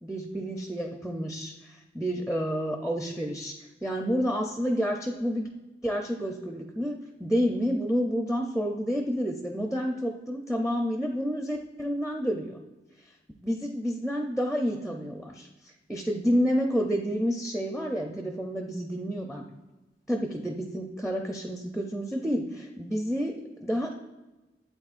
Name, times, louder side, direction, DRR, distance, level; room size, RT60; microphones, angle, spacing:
voice 1, 0.0-5.5 5.8-12.6 13.4-15.5 15.9-19.5 20.1-23.9, equal, 5° right, 2 dB, 0.5 m, -29 dB
12.0 x 8.3 x 2.5 m, 1.1 s
head